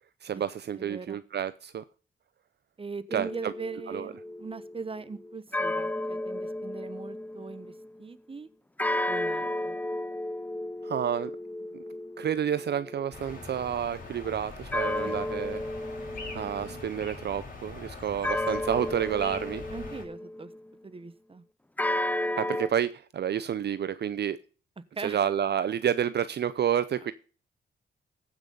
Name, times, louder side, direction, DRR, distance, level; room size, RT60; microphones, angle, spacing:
voice 1, 0.2-1.8 3.1-3.5 3.9-4.1 10.8-11.3 12.2-15.6 16.3-19.6 22.1-24.4 25.0-27.1, right 9 dB, 60° right, 15 dB, 0.6 m, -29 dB
voice 2, 0.8-1.2 2.8-7.7 8.0-8.5 9.1-9.8 15.0-15.2 19.7-20.5 20.8-21.4 25.0-25.2, right 4 dB, 30° right, 16 dB, 1.0 m, -40 dB
sound 1, 3.1-8.0 8.8-13.7 14.7-17.1 18.2-20.7 21.8-22.7, left 1 dB, 10° left, 0.5 m, -33 dB
sound 2, 13.1-20.0, left 3 dB, 45° left, 5.8 m, -43 dB
15.0 x 6.1 x 5.3 m, 0.38 s
cardioid pair, 65°, 20 cm